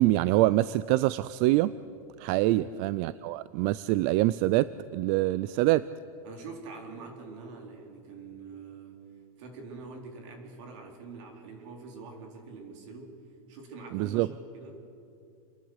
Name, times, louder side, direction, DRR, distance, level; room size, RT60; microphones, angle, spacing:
voice 1, 0.0-1.7 2.2-5.9 13.9-14.3, right 17 dB, 40° right, 17 dB, 0.4 m, -25 dB
voice 2, 2.5-2.8 6.2-9.0 9.4-13.2 13.5-14.3 14.5-14.8, right 4 dB, 55° right, 2 dB, 4.4 m, -45 dB
28.5 x 11.5 x 8.1 m, 2.6 s
supercardioid pair, 145°, 18 cm